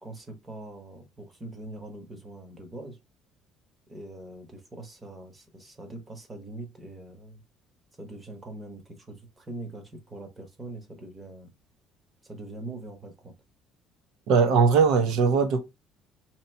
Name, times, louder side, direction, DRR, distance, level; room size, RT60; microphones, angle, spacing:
voice 1, 0.0-3.0 3.9-7.4 8.0-11.5 12.2-13.3, right 2 dB, 15° right, 1.0 m, -42 dB
voice 2, 14.3-15.6, right 5 dB, 70° right, 0.8 m, -20 dB
2.9 x 2.8 x 4.4 m
cardioid pair, 170°, 0 cm